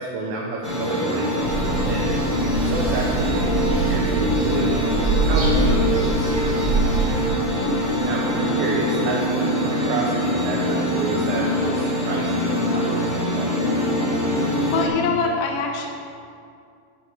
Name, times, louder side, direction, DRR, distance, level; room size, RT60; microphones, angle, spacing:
voice 1, 0.0-2.1 2.6-6.6 8.0-13.5, right 3 dB, 75° right, -3 dB, 2.6 m, -29 dB
sound 1, 0.6-14.9, left 1 dB, 60° left, 0.7 m, -23 dB
sound 2, 1.4-7.3, right 3 dB, 35° right, 1.6 m, -24 dB
voice 2, 14.7-15.9, left 5 dB, 75° left, 1 dB, 2.6 m, -24 dB
12.0 x 4.3 x 6.1 m, 2.4 s
omnidirectional pair, 4.4 m